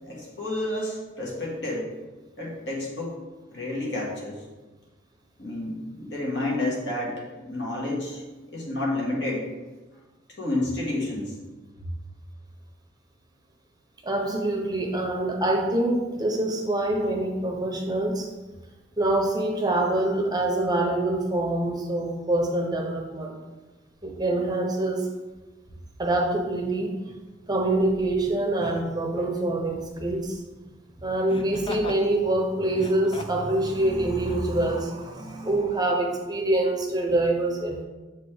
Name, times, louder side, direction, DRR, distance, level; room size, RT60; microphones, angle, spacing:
voice 1, 0.0-1.9 2.4-3.1 3.5-4.3 5.4-8.2 8.5-9.4 10.4-11.3 11.8-11.9, left 1 dB, 65° left, -4 dB, 1.7 m, -30 dB
voice 2, 0.5-0.8 14.0-18.3 19.0-23.3 24.0-25.1 26.0-26.9 27.5-30.4 31.0-37.8, right 2 dB, 20° right, 1 dB, 0.7 m, -25 dB
Laughter, 27.1-27.2 28.6-28.9 31.3-32.0 32.7-33.5 34.2-34.4, left 2 dB, 25° left, 0.3 m, -39 dB
7.2 x 4.2 x 3.3 m, 1.2 s
head